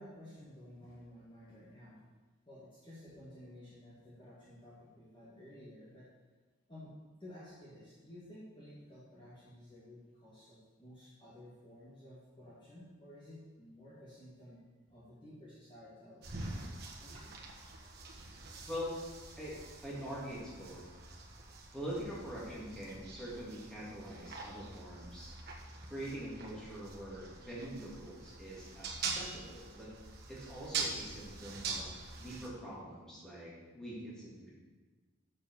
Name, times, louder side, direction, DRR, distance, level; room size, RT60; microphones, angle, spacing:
voice 1, 0.0-2.0 2.5-6.1 6.7-6.9 7.2-14.6 14.9-16.7 17.0-17.3, left 1 dB, 25° left, -8 dB, 1.8 m, -53 dB
sound 1, 16.2-32.5, right 4 dB, 50° right, 1.3 m, -44 dB
voice 2, 19.8-21.0 21.7-25.4 25.9-29.9 30.3-34.5, equal, 5° left, -7 dB, 2.4 m, -44 dB
7.2 x 6.7 x 6.4 m, 1.3 s
head